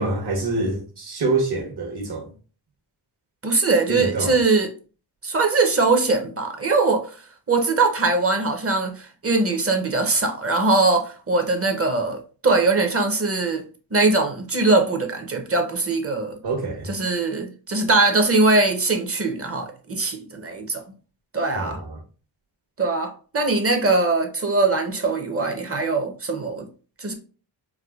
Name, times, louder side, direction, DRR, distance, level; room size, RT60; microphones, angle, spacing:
voice 1, 0.0-2.3 3.9-4.4 16.4-16.9 21.5-22.0, right 2 dB, 55° right, 1.2 m, -26 dB
voice 2, 3.4-4.7 5.2-7.1 7.5-13.6 13.9-16.4 16.9-20.8 21.3-21.8 22.8-26.7 27.0-27.1, right 3 dB, 30° right, 0.7 m, -21 dB
4.6 x 2.1 x 2.4 m
cardioid pair, 80°, 46 cm